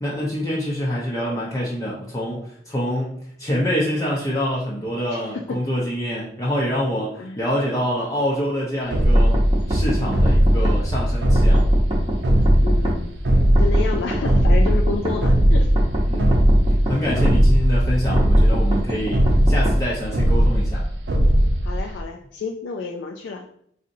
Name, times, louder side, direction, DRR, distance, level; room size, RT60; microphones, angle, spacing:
voice 1, 0.0-3.1 3.4-9.4 9.7-11.6 16.1-16.4 16.8-20.8, equal, 20° left, -5 dB, 0.5 m, -26 dB
voice 2, 5.1-5.7 7.1-7.4 12.6-15.7 17.1-17.4 21.6-23.5, left 4 dB, 90° left, 2 dB, 0.4 m, -31 dB
sound 1, 8.9-22.0, equal, 75° right, 0.6 m, -18 dB
sound 2, 9.2-10.8 11.4-13.0 13.6-15.2 15.8-17.4 18.2-19.8, right 1 dB, 25° right, 0.7 m, -26 dB
4.0 x 2.6 x 2.6 m, 0.67 s
head